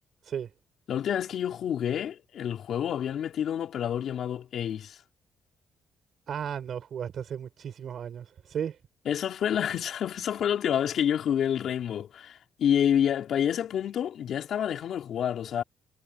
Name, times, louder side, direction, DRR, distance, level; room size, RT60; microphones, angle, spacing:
voice 1, 0.9-5.0 9.1-15.6, left 9 dB, 65° left, 3.5 m, -28 dB
voice 2, 6.3-8.8, right 8 dB, 60° right, 7.4 m, -35 dB
cardioid pair, 90°, 0 cm